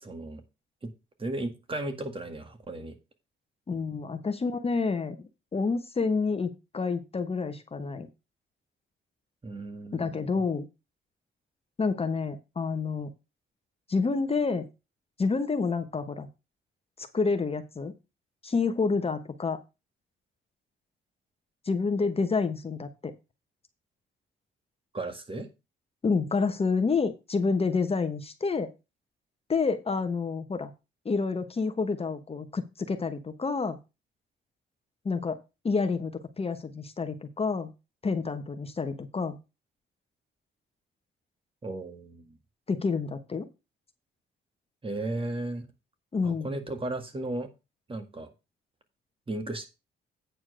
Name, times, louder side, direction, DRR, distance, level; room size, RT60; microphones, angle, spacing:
voice 1, 0.0-0.4 0.8-0.9 1.2-3.0 9.4-10.3 24.9-25.5 41.6-42.4 44.8-45.7 46.2-47.5 47.9-48.3 49.3-49.7, right 2 dB, 25° right, 8 dB, 1.9 m, -35 dB
voice 2, 3.7-8.1 9.9-10.7 11.8-13.1 13.9-14.7 15.2-16.3 17.0-17.9 18.4-19.6 21.6-23.1 26.0-28.7 29.5-30.7 31.0-33.8 35.0-35.4 35.6-37.7 38.0-39.4 42.7-43.5 46.1-46.5, left 4 dB, 30° left, 8 dB, 1.1 m, -28 dB
9.1 x 4.6 x 6.2 m, 0.27 s
cardioid pair, 90°, 20 cm